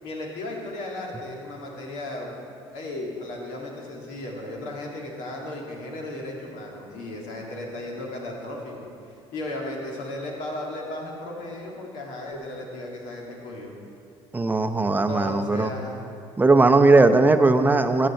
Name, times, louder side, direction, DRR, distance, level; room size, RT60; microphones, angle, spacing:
voice 1, 0.0-2.3 2.7-13.7 15.1-16.0, left 1 dB, 70° left, -1 dB, 2.3 m, -35 dB
voice 2, 14.3-15.7 16.4-18.1, right 3 dB, 15° right, 8 dB, 0.7 m, -18 dB
14.0 x 8.3 x 4.3 m, 2.5 s
supercardioid pair, 80°, 13 cm